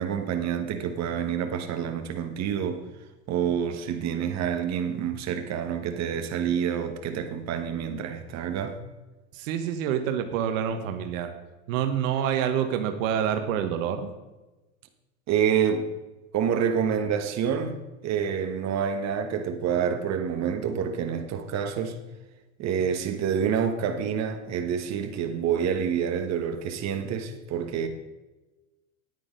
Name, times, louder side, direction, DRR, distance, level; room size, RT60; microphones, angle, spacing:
voice 1, 0.0-2.8 3.3-8.8 15.3-15.9 16.3-17.8 18.0-22.0 22.6-27.9, right 8 dB, 40° right, 1.4 m, -27 dB
voice 2, 9.3-11.3 11.7-14.1, right 9 dB, 70° right, 1.3 m, -27 dB
9.8 x 9.1 x 5.2 m
hypercardioid pair, 100°, 40 cm